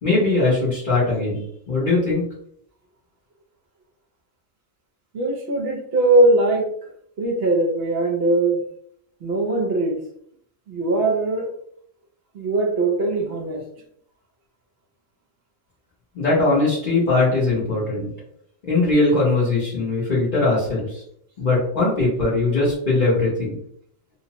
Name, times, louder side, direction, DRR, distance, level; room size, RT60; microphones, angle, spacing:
voice 1, 0.0-2.2 16.1-18.1 18.6-21.0 21.4-23.5, left 2 dB, 45° left, -7 dB, 0.9 m, -20 dB
voice 2, 5.1-6.9 7.2-8.6 9.2-10.0 10.7-11.5 12.3-13.6, right 2 dB, 60° right, 0 dB, 0.8 m, -20 dB
2.9 x 2.1 x 2.8 m, 0.68 s
omnidirectional pair, 1.3 m